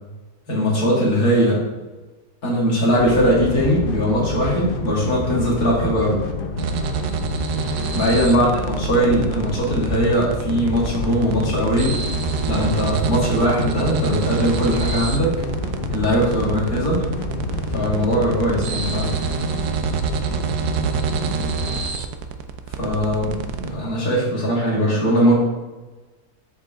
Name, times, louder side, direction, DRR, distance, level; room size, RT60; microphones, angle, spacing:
voice 1, 0.5-1.6 2.4-6.2 7.9-12.0 12.4-15.4 15.9-17.0 17.7-19.1 22.8-25.3, equal, 65° left, -5 dB, 2.9 m, -20 dB
sound 1, 2.9-21.8, left 3 dB, 45° left, 0.8 m, -28 dB
sound 2, 6.6-23.7, right 7 dB, 75° right, 1.2 m, -28 dB
7.6 x 7.1 x 3.7 m, 1.2 s
omnidirectional pair, 1.7 m